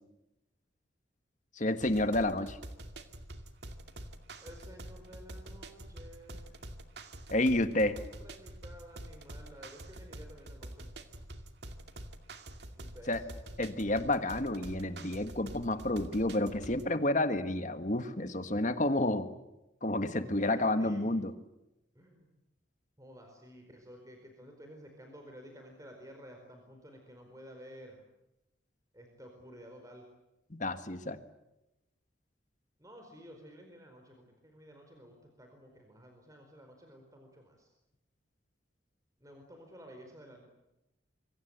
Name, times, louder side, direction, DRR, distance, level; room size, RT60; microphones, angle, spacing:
voice 1, 1.6-2.6 7.3-8.0 13.1-13.2 13.6-19.3 19.8-21.3 30.5-31.2, left 1 dB, 40° left, 10 dB, 1.6 m, -30 dB
sound 1, 1.8-16.9, right 1 dB, 60° right, 2.3 m, -47 dB
voice 2, 4.4-6.6 7.4-11.3 12.7-13.3 20.2-21.1 21.9-22.3 23.0-28.0 28.9-30.0 32.8-37.7 39.2-40.4, equal, 15° right, 3 dB, 4.6 m, -53 dB
26.5 x 23.5 x 8.1 m, 0.91 s
head